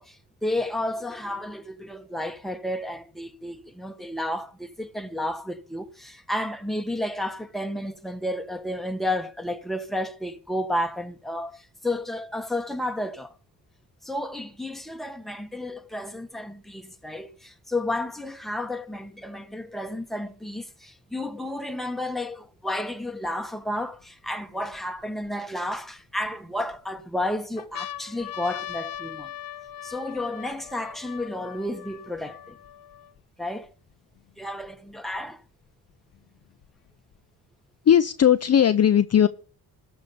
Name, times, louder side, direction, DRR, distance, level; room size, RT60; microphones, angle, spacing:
voice 1, 0.0-13.3 14.0-29.3 29.8-32.6 33.4-33.7 34.4-35.4, left 1 dB, ahead, 1.3 m, -32 dB
sound 1, 23.3-23.4 24.0-25.3 26.0-26.8 27.2-27.3 27.6-33.2 33.9-34.0 34.2-35.2 36.1-37.2, left 11 dB, 65° left, 0.9 m, -40 dB
voice 2, 37.9-39.3, left 9 dB, 40° left, 0.6 m, -18 dB
14.0 x 5.4 x 6.9 m
cardioid pair, 85°, 38 cm